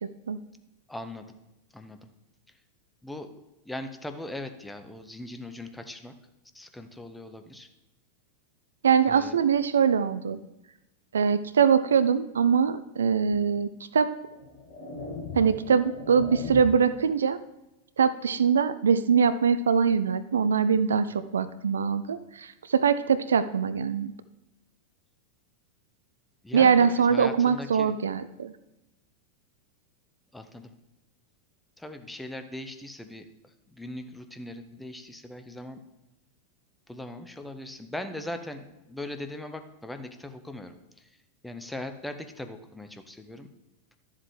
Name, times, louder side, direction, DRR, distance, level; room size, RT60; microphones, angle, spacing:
voice 1, 0.0-0.4 8.8-10.4 11.1-14.1 15.3-17.4 18.0-24.1 26.5-28.5, right 6 dB, 70° right, 14 dB, 0.3 m, -23 dB
voice 2, 0.9-1.3 1.7-2.1 3.0-3.4 3.6-6.2 6.5-7.7 9.1-9.4 26.4-27.9 30.3-30.7 31.8-35.8 36.9-41.1 41.4-43.5, left 1 dB, 5° left, 7 dB, 0.8 m, -40 dB
sound 1, 13.3-13.5 14.2-17.0, left 4 dB, 45° left, 2.1 m, -39 dB
12.0 x 7.4 x 3.2 m, 0.93 s
figure-of-eight pair, 90°, 0 cm